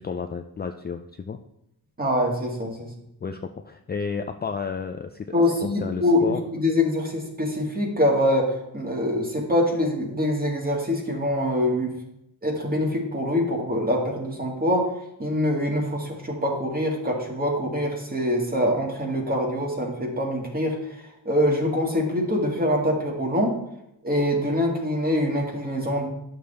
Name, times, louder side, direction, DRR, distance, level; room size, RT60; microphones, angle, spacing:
voice 1, 0.0-1.4 3.2-5.3 5.6-6.4, left 5 dB, 25° left, 5 dB, 0.4 m, -32 dB
voice 2, 2.0-2.9 5.3-11.9 12.4-21.0 21.3-23.5 24.0-26.1, left 1 dB, 25° right, 0 dB, 2.0 m, -24 dB
11.0 x 6.6 x 3.4 m, 0.82 s
wide cardioid pair, 135°, 38 cm